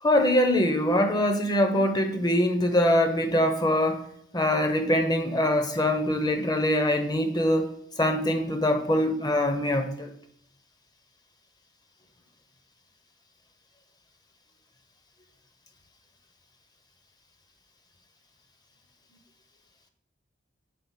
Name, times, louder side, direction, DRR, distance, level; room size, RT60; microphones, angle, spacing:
voice 1, 0.0-4.0 4.3-7.7 8.0-10.1, left 1 dB, 20° left, 6 dB, 0.8 m, -23 dB
7.6 x 3.9 x 5.6 m, 0.73 s
head